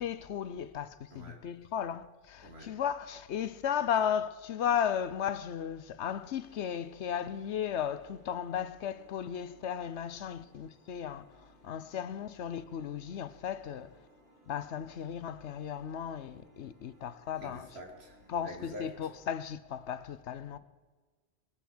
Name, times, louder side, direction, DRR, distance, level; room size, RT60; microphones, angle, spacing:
voice 1, 0.0-14.0 14.5-17.7 18.3-20.6, left 8 dB, 85° left, 1.0 m, -35 dB
voice 2, 1.1-1.4 2.4-2.7 17.4-19.1 20.5-20.6, equal, 65° right, 2.7 m, -47 dB
sound 1, 6.0-19.3, equal, 50° right, 2.2 m, -63 dB
20.5 x 8.3 x 6.2 m
omnidirectional pair, 1.1 m